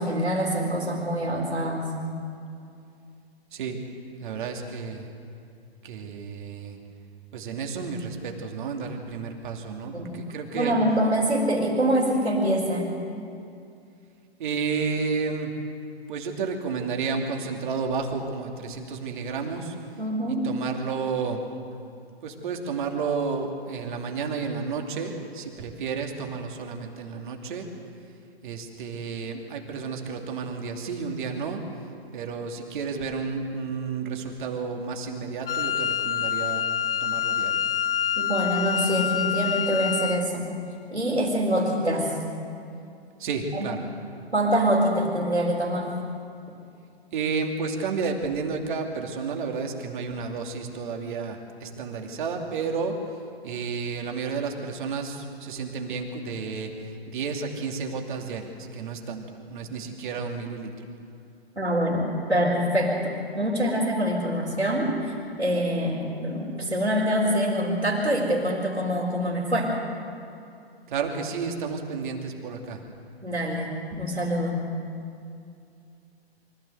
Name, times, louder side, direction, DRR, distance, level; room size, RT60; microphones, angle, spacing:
voice 1, 0.0-1.9 9.9-10.2 10.5-13.0 20.0-20.5 38.2-40.5 40.9-42.1 43.5-43.7 44.3-45.9 61.6-69.7 73.2-74.6, equal, 90° right, -7 dB, 4.2 m, -25 dB
voice 2, 4.2-5.0 5.8-6.8 7.3-10.7 14.4-15.5 16.1-19.7 20.4-21.4 22.2-27.7 28.4-31.6 32.1-36.7 37.0-37.5 43.2-43.8 47.1-52.9 53.4-56.7 57.1-60.7 70.9-72.8, right 5 dB, 50° right, 3 dB, 2.8 m, -31 dB
Wind instrument woodwind instrument, 35.5-40.3, left 9 dB, 60° left, 0.6 m, -27 dB
24.5 x 15.0 x 8.0 m, 2.5 s
figure-of-eight pair, 120°, 32 cm